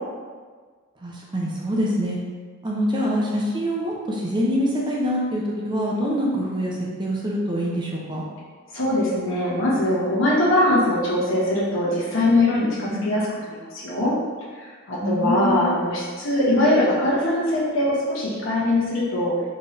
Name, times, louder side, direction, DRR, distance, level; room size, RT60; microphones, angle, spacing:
voice 1, 1.0-2.2 2.6-8.2 12.9-13.1 15.0-15.7, equal, 20° right, -3 dB, 0.5 m, -25 dB
voice 2, 8.7-14.1 14.5-19.3, left 1 dB, 65° left, -7 dB, 1.4 m, -22 dB
4.4 x 3.1 x 3.2 m, 1.5 s
head